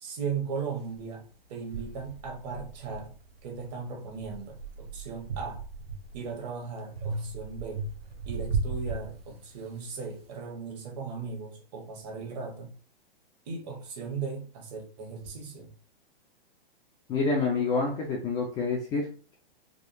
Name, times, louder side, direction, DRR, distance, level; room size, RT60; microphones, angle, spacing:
voice 1, 0.0-3.2 3.4-5.6 6.1-7.8 8.2-12.7 13.5-15.7, right 5 dB, 45° right, 1.2 m, -37 dB
sound 1, 0.9-1.0 1.7-3.6 4.0-6.4 7.0-9.7, right 4 dB, 85° right, 0.8 m, -36 dB
voice 2, 17.1-19.1, left 4 dB, 15° left, 0.3 m, -27 dB
3.5 x 2.3 x 2.6 m
hypercardioid pair, 130°, 29 cm